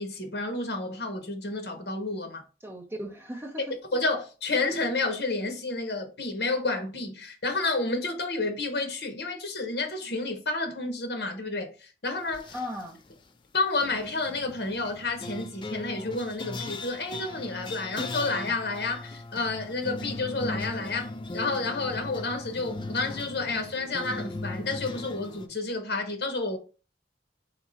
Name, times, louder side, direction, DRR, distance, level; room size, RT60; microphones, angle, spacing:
voice 1, 0.0-2.4 3.9-12.5 13.5-26.6, left 3 dB, 70° left, 1.0 m, -30 dB
voice 2, 2.6-3.6 12.5-13.0, equal, 15° right, 0.8 m, -36 dB
sound 1, 12.3-12.9 13.8-25.5, left 2 dB, 25° left, 0.4 m, -38 dB
3.6 x 3.0 x 4.1 m
head